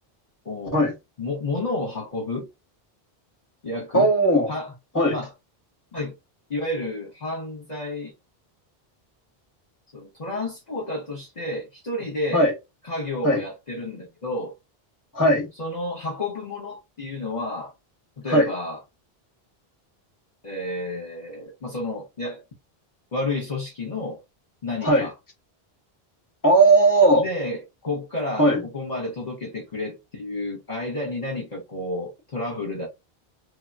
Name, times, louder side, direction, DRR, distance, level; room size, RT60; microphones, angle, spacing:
voice 1, 0.4-0.9 1.2-2.5 3.6-4.1 4.5-4.7 5.1-5.3 5.9-6.1 6.5-8.1 9.9-12.5 12.8-14.5 15.6-17.7 18.2-18.8 20.4-22.4 23.1-24.2 24.6-25.1 27.1-32.9, left 2 dB, 45° left, 1.1 m, -31 dB
voice 2, 3.9-4.5 4.9-5.2 12.3-12.5 13.2-13.4 15.1-15.5 18.3-18.5 24.8-25.1 26.4-27.3 28.4-28.6, right 1 dB, 20° left, 1.1 m, -18 dB
3.3 x 2.9 x 2.4 m
omnidirectional pair, 1.0 m